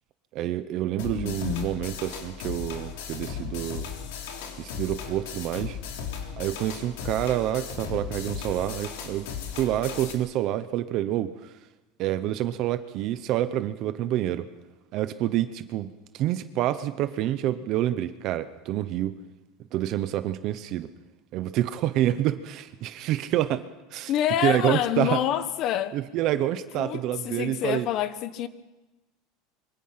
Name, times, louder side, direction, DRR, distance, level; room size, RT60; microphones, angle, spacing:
voice 1, 0.3-3.9 4.6-5.8 6.4-11.5 12.0-14.5 14.9-19.2 19.7-20.9 21.3-23.6 23.9-24.1 24.4-25.2 25.9-27.9, right 13 dB, 35° right, 0.8 m, -28 dB
sound 1, 1.0-10.1, left 7 dB, 70° left, 3.8 m, -36 dB
voice 2, 1.1-1.7 24.1-26.0 26.7-28.5, left 11 dB, 35° left, 1.1 m, -27 dB
25.5 x 24.0 x 5.8 m
supercardioid pair, 180°, 0 cm